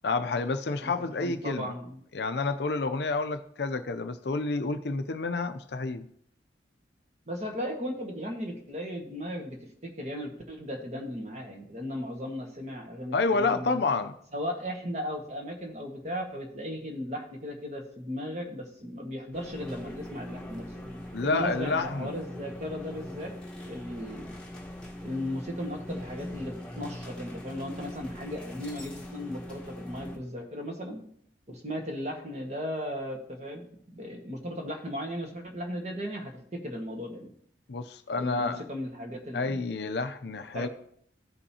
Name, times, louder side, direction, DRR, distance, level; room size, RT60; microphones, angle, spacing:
voice 1, 0.0-1.7 2.1-6.0 13.1-14.1 21.1-22.1 37.7-38.6 39.3-40.7, left 3 dB, 60° left, 0.5 m, -29 dB
voice 2, 1.2-2.0 7.3-13.8 14.3-20.7 21.2-23.3 23.6-24.3 25.0-31.0 31.5-37.3 38.2-39.7 40.5-40.7, equal, 40° right, 1.5 m, -36 dB
sound 1, 19.3-30.2, left 1 dB, 5° left, 1.3 m, -41 dB
15.0 x 5.3 x 2.8 m
head